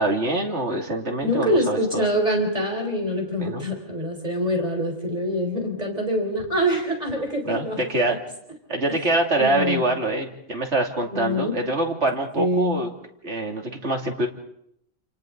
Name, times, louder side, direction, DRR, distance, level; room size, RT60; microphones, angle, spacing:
voice 1, 0.0-2.1 3.4-3.6 7.4-8.2 8.7-12.9 13.2-14.3, right 2 dB, 60° right, 2 dB, 3.1 m, -24 dB
voice 2, 1.2-7.8 8.9-9.0 9.4-9.8 11.1-11.5 12.4-12.8, equal, 30° right, 2 dB, 4.7 m, -25 dB
29.0 x 29.0 x 4.0 m, 0.74 s
omnidirectional pair, 1.3 m